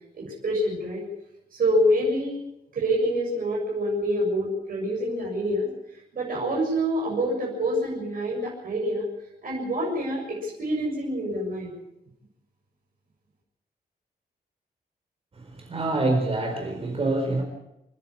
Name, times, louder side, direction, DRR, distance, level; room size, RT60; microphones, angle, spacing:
voice 1, 0.1-1.0 1.5-2.4 2.7-5.7 6.1-9.1 9.4-11.7, equal, 60° right, -3 dB, 7.2 m, -26 dB
voice 2, 15.3-17.4, right 2 dB, 35° right, 3 dB, 4.1 m, -26 dB
29.0 x 10.5 x 8.6 m, 0.87 s
wide cardioid pair, 170°, 17 cm